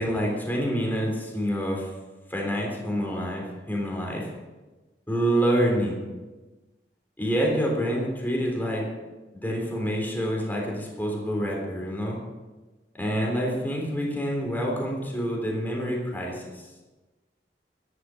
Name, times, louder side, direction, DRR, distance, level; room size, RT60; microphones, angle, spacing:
voice 1, 0.0-1.9 2.3-4.3 5.1-6.0 7.2-8.8 9.3-12.2 13.0-16.6, equal, 10° left, -1 dB, 3.5 m, -27 dB
12.5 x 11.5 x 6.4 m, 1.2 s
head